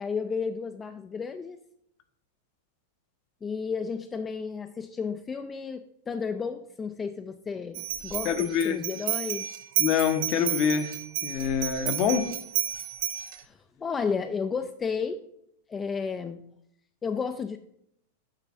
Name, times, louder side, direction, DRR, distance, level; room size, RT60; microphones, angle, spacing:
voice 1, 0.0-1.6 3.4-9.5 13.4-15.2 15.7-16.4 17.0-17.6, left 5 dB, 20° left, 0.4 m, -32 dB
sound 1, 7.7-13.4, right 14 dB, 55° right, 0.5 m, -31 dB
voice 2, 8.2-8.8 9.8-12.3, left 7 dB, 45° left, 0.8 m, -26 dB
7.4 x 3.3 x 6.2 m
hypercardioid pair, 95°, 0 cm